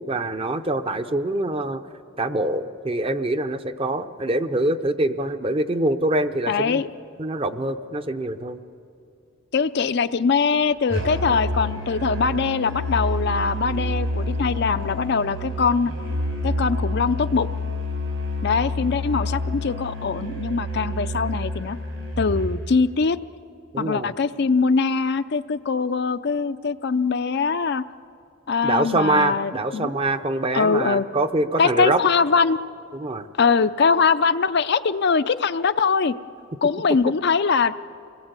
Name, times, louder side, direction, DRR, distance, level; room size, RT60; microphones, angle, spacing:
voice 1, 0.0-1.8 2.2-6.8 7.2-8.6 23.7-24.1 28.6-32.0 32.9-33.3, right 2 dB, 25° right, 9 dB, 0.7 m, -24 dB
voice 2, 6.5-6.9 9.5-15.9 16.4-17.5 18.4-21.8 22.2-23.2 23.8-27.9 28.5-29.9 30.5-31.1 31.6-32.6 33.4-36.1 36.6-37.8, left 5 dB, 55° left, 12 dB, 0.5 m, -22 dB
Musical instrument, 10.9-22.6, left 1 dB, 75° right, 6.0 m, -28 dB
27.5 x 20.0 x 8.1 m, 2.5 s
head